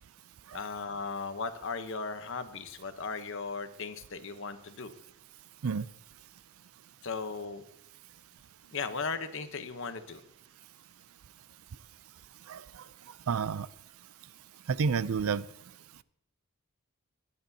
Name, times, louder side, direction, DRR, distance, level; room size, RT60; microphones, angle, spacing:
voice 1, 0.5-4.9 7.0-7.6 8.7-10.2, left 4 dB, 55° left, 9 dB, 0.9 m, -37 dB
voice 2, 12.5-12.8 13.3-13.7 14.7-15.5, right 5 dB, 70° right, 17 dB, 0.4 m, -30 dB
21.5 x 10.5 x 2.8 m, 0.75 s
head